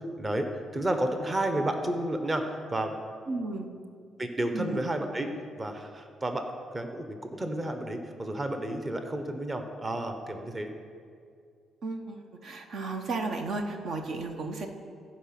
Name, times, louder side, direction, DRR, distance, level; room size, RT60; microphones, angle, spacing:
voice 1, 0.2-0.5 0.7-2.4 2.7-2.9 4.2-5.3 5.6-6.4 6.7-10.7, right 1 dB, 25° right, 5 dB, 1.0 m, -31 dB
voice 2, 3.3-3.7 4.5-4.8 11.8-14.7, right 3 dB, 65° right, 5 dB, 1.1 m, -34 dB
15.5 x 5.2 x 5.9 m, 2.3 s
cardioid pair, 90°, 0 cm